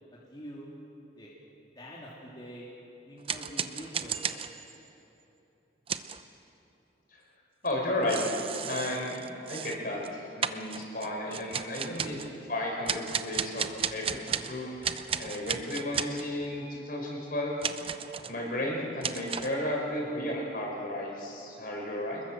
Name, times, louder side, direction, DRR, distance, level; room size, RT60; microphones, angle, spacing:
voice 1, 0.1-0.7 1.2-1.3 1.7-2.7 3.1-4.5, equal, 25° left, -6 dB, 3.2 m, -45 dB
sound 1, 3.3-4.9 5.9-6.2 7.7-7.8 8.1-10.1 10.4-12.3 12.9-14.5 14.8-16.3 17.6-18.4 19.0-19.6, right 7 dB, 30° right, 0.7 m, -34 dB
voice 2, 7.6-8.3 8.6-9.2 9.5-12.2 12.5-17.5 18.3-22.2, left 1 dB, 50° left, -1 dB, 5.3 m, -33 dB
27.0 x 21.5 x 7.6 m, 3.0 s
head